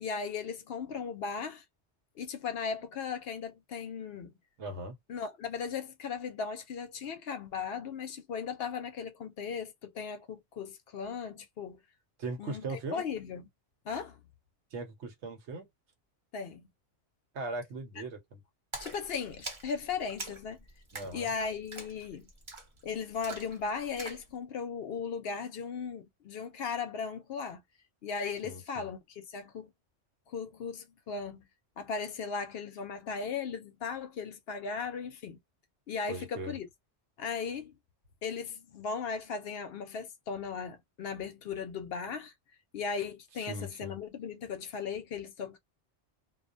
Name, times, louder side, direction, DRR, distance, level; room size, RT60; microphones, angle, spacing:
voice 1, 0.0-1.6 2.2-4.3 5.1-11.8 12.4-13.4 13.9-14.2 16.3-16.7 18.8-20.7 21.1-22.3 22.8-27.6 28.0-29.7 30.3-31.4 31.8-35.4 35.9-36.7 37.2-37.8 38.2-42.3 42.7-45.6, left 5 dB, 65° left, 0.7 m, -37 dB
voice 2, 4.6-4.9 12.2-13.0 14.7-15.7 17.3-18.4 20.9-21.3 28.4-28.9 36.1-36.6 43.4-44.0, right 2 dB, 75° right, 1.1 m, -39 dB
Splash splatter, 18.7-24.3, right 2 dB, 30° right, 0.7 m, -45 dB
2.4 x 2.1 x 2.5 m
omnidirectional pair, 1.2 m